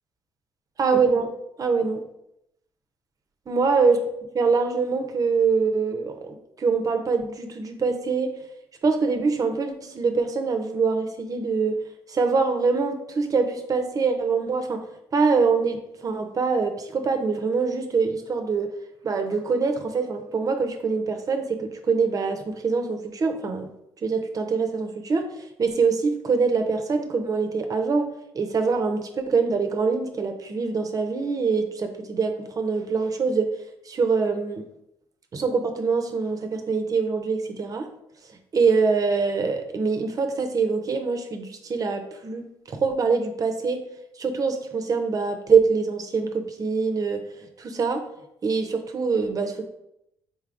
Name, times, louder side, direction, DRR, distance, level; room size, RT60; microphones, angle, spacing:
voice 1, 0.8-1.3 1.6-2.0 3.5-4.0 4.3-8.4 8.8-11.8 12.1-14.8 15.1-18.7 19.0-23.7 24.0-25.3 25.6-28.1 28.3-33.5 33.9-34.7 35.3-37.9 38.5-43.8 44.2-47.2 47.6-48.0 48.4-49.7, right 4 dB, 40° right, 6 dB, 0.5 m, -24 dB
3.9 x 3.4 x 2.5 m, 0.81 s
supercardioid pair, 70°, 9 cm